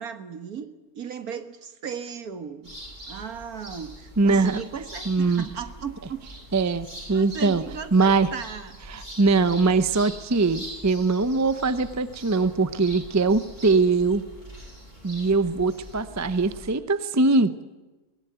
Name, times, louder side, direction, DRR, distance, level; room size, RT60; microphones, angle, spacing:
voice 1, 0.0-2.7 3.1-6.2 7.1-8.8, right 7 dB, 65° right, 9 dB, 1.9 m, -36 dB
sound 1, 2.6-16.7, right 1 dB, 50° right, 8.0 m, -43 dB
voice 2, 4.2-4.6 5.1-5.4 6.5-7.6 7.9-8.3 8.9-14.2 15.0-17.5, right 3 dB, 20° right, 12 dB, 0.5 m, -22 dB
22.0 x 18.5 x 9.3 m, 1.1 s
omnidirectional pair, 1.7 m